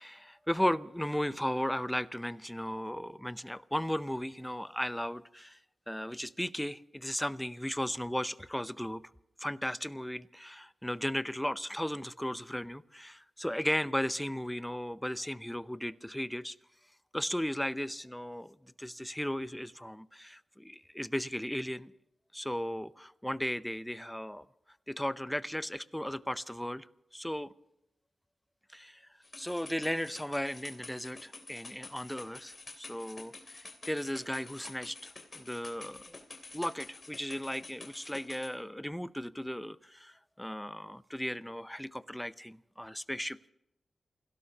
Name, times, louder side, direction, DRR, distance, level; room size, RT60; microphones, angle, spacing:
voice 1, 0.0-5.6 5.9-9.0 9.4-16.6 17.1-21.9 22.3-24.5 24.9-26.9 27.1-27.5 28.7-29.0 29.4-36.2 36.5-43.4, equal, 5° left, 0.6 m, -36 dB
sound 1, 29.2-38.5, left 3 dB, 40° left, 3.2 m, -49 dB
28.5 x 17.0 x 2.9 m
cardioid pair, 75°, 0 cm